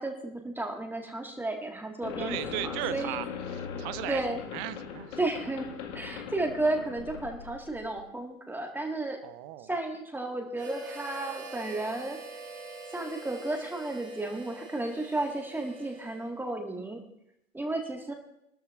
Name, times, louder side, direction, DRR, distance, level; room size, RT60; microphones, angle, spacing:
voice 1, 0.0-2.4 2.6-3.2 4.1-4.4 5.2-5.7 5.9-9.2 9.7-12.2 12.9-17.0 17.5-18.1, right 2 dB, 5° right, 2 dB, 1.7 m, -33 dB
sound 1, 2.0-8.0, left 7 dB, 60° left, 1.8 m, -40 dB
voice 2, 2.2-4.2 4.5-5.2 9.2-9.7, right 13 dB, 35° right, 14 dB, 0.7 m, -36 dB
Harmonica, 10.5-16.6, right 3 dB, 75° right, 5.8 m, -45 dB
23.5 x 13.0 x 2.5 m, 0.81 s
hypercardioid pair, 105°, 40 cm